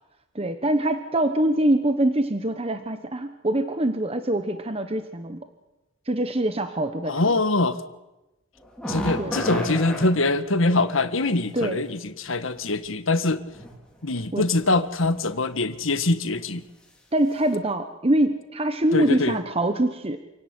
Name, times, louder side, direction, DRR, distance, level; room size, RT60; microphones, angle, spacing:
voice 1, 0.3-5.4 6.0-7.3 9.2-9.3 11.5-11.8 14.3-14.4 17.1-20.2, right 1 dB, 30° right, 8 dB, 1.2 m, -24 dB
voice 2, 7.0-7.8 8.9-13.4 14.0-16.6 18.9-19.4, left 2 dB, 70° left, 11 dB, 1.6 m, -23 dB
sound 1, 8.6-10.1 12.3-12.4 13.3-13.7 14.1-14.3 15.0-15.3 15.7-15.9 16.3-16.4, equal, 5° left, 4.6 m, -31 dB
27.5 x 17.5 x 9.7 m, 1.0 s
head